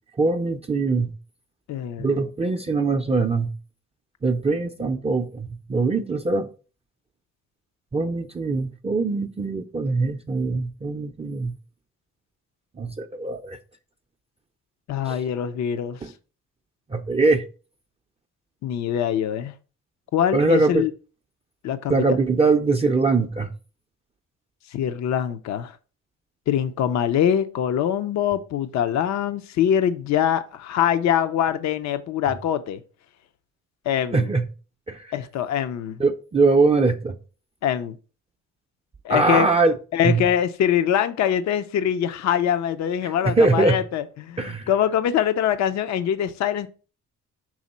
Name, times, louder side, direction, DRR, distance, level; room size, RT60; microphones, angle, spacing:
voice 1, 0.2-1.1 2.0-3.5 4.2-6.5 7.9-11.5 12.8-13.6 15.1-15.2 16.0-16.1 16.9-17.4 20.3-20.9 21.9-23.5 34.1-34.5 34.9-35.1 36.0-37.2 39.1-39.8 40.0-40.2 43.0-43.8 44.4-44.7, right 3 dB, 20° right, 0.5 m, -22 dB
voice 2, 1.7-2.3 14.9-16.0 18.6-19.5 20.1-20.9 21.6-22.0 22.4-22.5 24.7-25.8 26.5-32.8 33.9-34.3 35.1-36.0 37.6-38.0 39.0-39.5 39.9-46.7, left 9 dB, 65° left, 0.6 m, -23 dB
6.2 x 3.6 x 4.1 m
cardioid pair, 90°, 30 cm